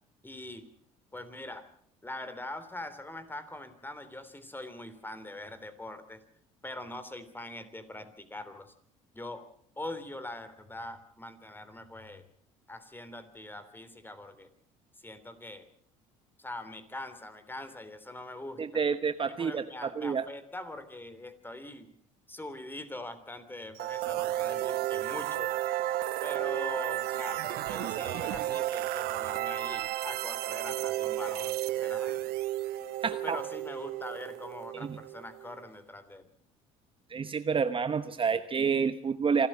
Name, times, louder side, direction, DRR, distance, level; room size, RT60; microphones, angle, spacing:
voice 1, 0.2-0.7 1.1-1.7 2.0-6.2 6.6-8.7 9.1-9.5 9.8-12.2 12.7-14.5 15.0-15.7 16.4-18.8 19.2-21.9 22.3-25.5 26.2-32.2 33.1-36.3, left 1 dB, 10° left, 11 dB, 3.3 m, -43 dB
voice 2, 18.6-20.2 33.0-33.4 34.9-35.0 37.1-39.5, right 6 dB, 30° right, 11 dB, 1.0 m, -29 dB
sound 1, 23.8-35.6, right 14 dB, 65° right, 1.3 m, -33 dB
27.0 x 13.0 x 7.5 m, 0.64 s
hypercardioid pair, 65°, 17 cm